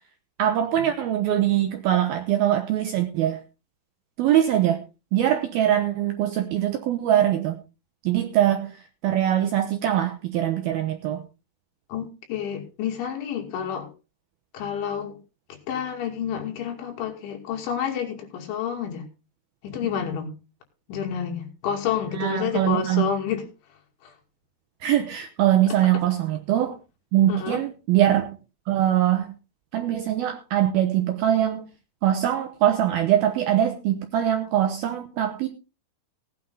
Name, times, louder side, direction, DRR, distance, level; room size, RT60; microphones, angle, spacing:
voice 1, 0.4-3.4 4.2-4.8 5.1-7.6 8.0-11.2 22.1-23.1 24.8-26.8 27.1-28.4 28.7-29.3 29.7-31.7 32.0-35.5, right 11 dB, 80° right, 7 dB, 2.2 m, -22 dB
voice 2, 11.9-13.9 14.5-15.2 15.7-19.1 19.6-20.3 20.9-23.5 24.0-24.1 25.9-26.0 27.3-27.6, left 8 dB, 75° left, 2 dB, 4.8 m, -29 dB
17.5 x 9.3 x 3.9 m, 0.30 s
omnidirectional pair, 5.5 m